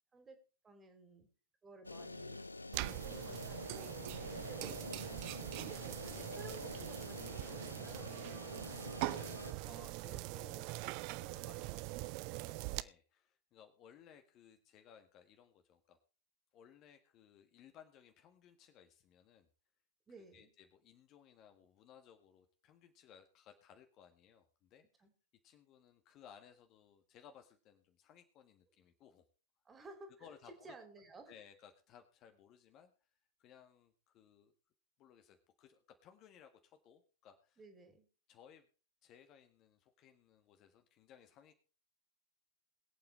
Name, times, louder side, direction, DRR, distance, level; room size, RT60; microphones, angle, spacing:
voice 1, 0.6-1.3 1.6-2.4 2.7-4.0 4.5-4.8 5.6-8.3 20.1-20.5 25.0-25.1 29.6-30.3 30.6-31.4 37.6-38.1, right 3 dB, 20° right, 6 dB, 3.1 m, -55 dB
sound 1, 1.8-9.5, left 2 dB, 80° left, 0.6 m, -47 dB
sound 2, 2.7-12.8, right 21 dB, 45° right, 0.5 m, -43 dB
voice 2, 9.0-16.0 16.5-19.5 20.3-25.1 25.4-29.2 30.2-30.7 31.3-32.9 33.4-34.5 35.0-37.6 38.3-38.7 39.0-41.5, left 8 dB, 35° left, 6 dB, 1.7 m, -61 dB
22.0 x 8.7 x 3.3 m, 0.35 s
figure-of-eight pair, 90°, 0 cm